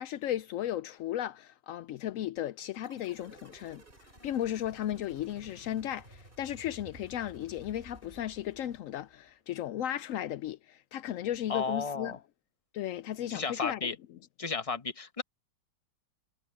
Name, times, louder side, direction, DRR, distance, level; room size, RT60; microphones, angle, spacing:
voice 1, 0.0-3.8 4.2-12.2 12.7-13.9, left 12 dB, 85° left, 0.7 m, -35 dB
sound 1, 2.8-9.3, right 1 dB, 30° right, 4.6 m, -54 dB
voice 2, 11.5-12.2 13.3-14.0 14.4-15.2, left 4 dB, 20° left, 1.1 m, -33 dB
omnidirectional pair, 1.9 m